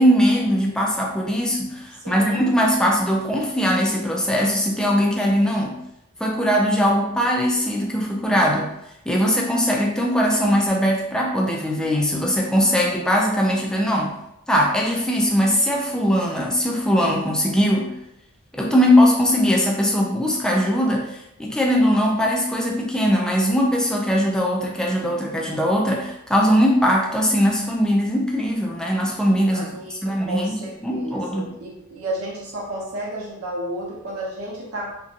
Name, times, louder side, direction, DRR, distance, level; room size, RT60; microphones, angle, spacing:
voice 1, 0.0-5.8 6.2-8.7 9.1-14.2 14.5-17.9 18.5-31.5, equal, 5° left, -2 dB, 0.3 m, -20 dB
voice 2, 2.0-2.5 29.5-34.9, right 1 dB, 85° right, -5 dB, 0.8 m, -32 dB
2.5 x 2.2 x 2.7 m, 0.84 s
head